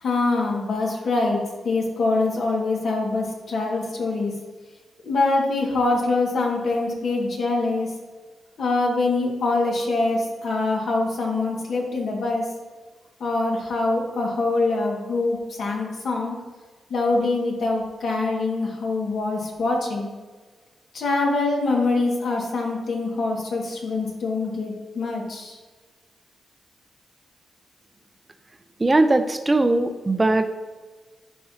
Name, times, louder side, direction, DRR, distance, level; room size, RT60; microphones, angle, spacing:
voice 1, 0.0-4.4 5.0-7.9 8.6-12.5 13.2-16.3 16.9-20.1 20.9-25.6, left 3 dB, 70° left, -2 dB, 1.9 m, -24 dB
voice 2, 28.8-30.6, right 2 dB, 25° right, 9 dB, 0.5 m, -20 dB
11.5 x 4.5 x 2.8 m, 1.4 s
cardioid pair, 85°, 0 cm